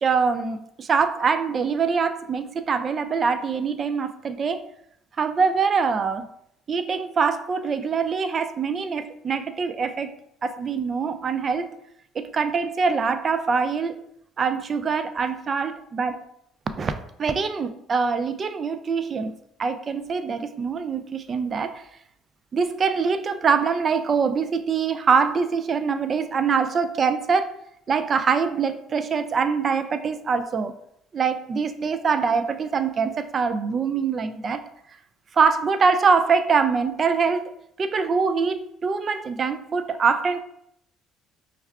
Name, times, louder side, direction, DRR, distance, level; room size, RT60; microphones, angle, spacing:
voice 1, 0.0-4.6 5.2-6.3 6.7-10.1 10.4-11.7 12.1-14.0 14.4-16.2 16.8-16.9 17.2-21.8 22.5-27.5 27.9-30.7 31.1-34.6 35.3-37.5 37.8-40.4, right 5 dB, 40° right, 9 dB, 0.3 m, -24 dB
5.3 x 2.3 x 2.3 m, 0.74 s
cardioid pair, 95°, 0 cm